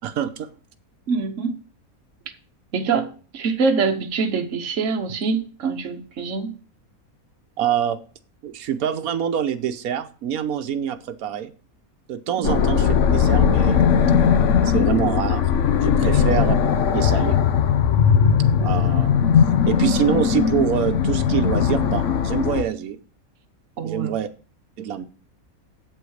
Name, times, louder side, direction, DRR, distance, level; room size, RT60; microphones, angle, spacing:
voice 1, 0.0-0.5 7.6-8.0 8.4-11.5 12.1-13.8 14.6-15.4 15.8-16.6 16.9-17.4 18.6-19.2 19.7-23.0 23.8-24.3 24.8-25.0, right 9 dB, 85° right, 1.2 m, -25 dB
voice 2, 1.1-1.6 2.7-6.6 12.4-12.6 16.0-16.2 23.8-24.2, right 4 dB, 60° right, 1.4 m, -25 dB
sound 1, 12.4-22.6, left 7 dB, 60° left, 1.1 m, -19 dB
8.0 x 7.8 x 6.4 m
omnidirectional pair, 1.5 m